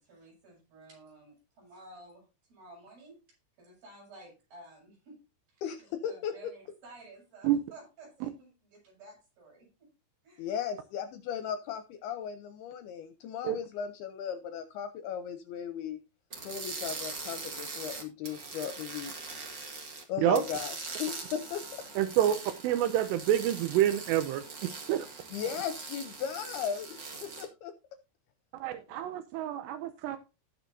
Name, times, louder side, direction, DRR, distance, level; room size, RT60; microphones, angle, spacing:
voice 1, 0.0-3.2 3.6-5.2 5.5-9.9 10.2-10.5, right 2 dB, 55° right, -2 dB, 8.4 m, -53 dB
voice 2, 5.6-6.5 10.4-16.0 16.4-19.2 20.1-21.6 25.3-27.7, left 8 dB, 75° left, 9 dB, 2.5 m, -36 dB
sound 1, 16.3-20.0 20.3-27.4, right 4 dB, 40° right, 1.8 m, -42 dB
voice 3, 22.0-25.1 28.5-30.2, right 11 dB, 80° right, 9 dB, 2.8 m, -28 dB
18.5 x 6.3 x 2.7 m, 0.28 s
omnidirectional pair, 5.1 m